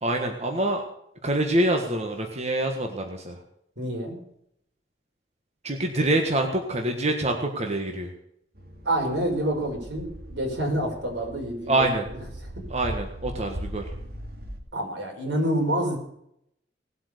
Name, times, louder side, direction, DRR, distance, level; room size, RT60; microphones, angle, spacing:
voice 1, 0.0-0.8 1.2-3.4 5.6-8.1 11.7-12.1 12.7-13.9, right 1 dB, 40° right, 3 dB, 1.6 m, -25 dB
voice 2, 3.8-4.2 8.8-11.9 12.6-12.7 14.7-16.0, right 1 dB, 85° right, 1 dB, 5.4 m, -27 dB
sound 1, 8.5-14.6, right 1 dB, 60° right, 2.6 m, -39 dB
19.0 x 8.0 x 6.8 m, 0.75 s
head